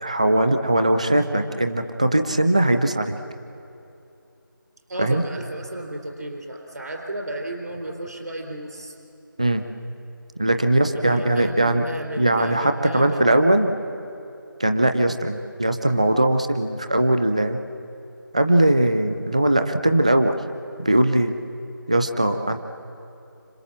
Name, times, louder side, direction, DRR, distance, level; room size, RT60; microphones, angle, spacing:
voice 1, 0.0-3.2 5.0-5.2 9.4-9.6 10.4-11.9 12.2-13.7 14.6-17.6 18.3-20.4 20.8-21.4 21.9-22.6, right 1 dB, 20° right, 7 dB, 0.6 m, -20 dB
voice 2, 4.9-8.9 10.9-13.2, right 1 dB, 55° right, 1 dB, 3.9 m, -33 dB
29.5 x 26.0 x 7.5 m, 2.8 s
figure-of-eight pair, 170°, 12 cm